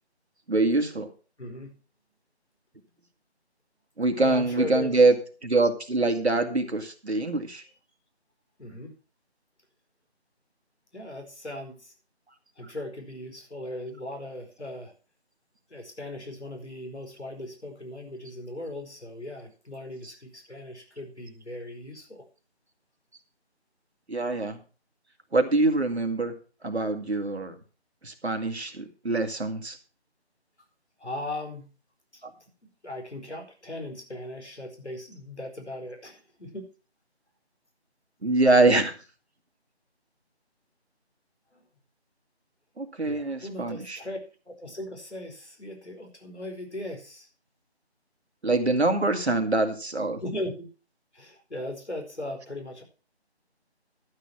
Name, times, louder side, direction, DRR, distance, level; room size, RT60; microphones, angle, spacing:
voice 1, 0.5-1.1 4.0-5.1 5.4-7.6 24.1-24.6 25.3-26.3 26.6-27.5 28.0-29.8 32.2-32.3 38.2-38.9 42.8-44.0 48.4-50.2, right 2 dB, 75° right, 6 dB, 2.4 m, -24 dB
voice 2, 1.4-1.8 4.2-5.0 8.6-8.9 10.9-11.9 12.6-14.9 15.7-22.2 31.0-31.7 32.1-32.2 32.8-36.7 41.5-41.6 43.1-44.2 44.5-47.3 50.2-50.7 51.1-52.8, left 1 dB, 85° left, 3 dB, 4.7 m, -38 dB
12.0 x 7.0 x 5.9 m, 0.36 s
figure-of-eight pair, 160°, 33 cm